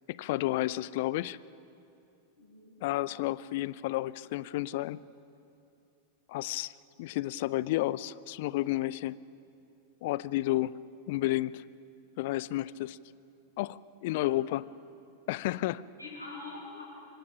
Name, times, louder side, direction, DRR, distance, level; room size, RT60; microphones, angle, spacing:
voice 1, 0.1-1.4 2.8-5.0 6.3-6.7 7.0-9.2 10.0-10.8 11.1-11.6 12.2-13.0 13.6-14.7 15.3-15.8, left 16 dB, 50° left, 20 dB, 0.5 m, -31 dB
voice 2, 2.3-2.8 14.1-14.4 16.0-16.8, left 3 dB, 85° right, -5 dB, 7.2 m, -45 dB
26.0 x 24.0 x 6.0 m, 2.7 s
figure-of-eight pair, 90°, 0 cm